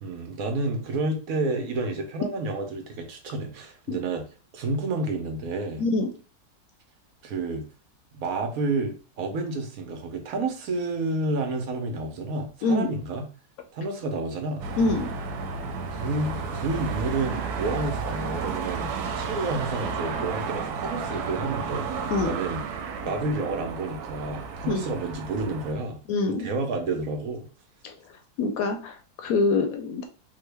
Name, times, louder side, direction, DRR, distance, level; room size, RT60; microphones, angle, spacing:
voice 1, 0.0-4.3 4.5-5.8 7.2-7.6 8.1-13.3 13.7-14.6 15.9-22.6 23.0-26.0 26.3-27.5, right 2 dB, 70° right, 1.1 m, -30 dB
voice 2, 5.8-6.1 12.6-12.9 14.8-15.1 22.1-22.3 24.7-24.8 26.1-26.5 27.8-27.9 28.4-30.1, left 3 dB, 70° left, 0.9 m, -25 dB
sound 1, 14.6-25.7, right 5 dB, 90° right, 1.1 m, -32 dB
3.7 x 2.1 x 3.3 m
omnidirectional pair, 1.6 m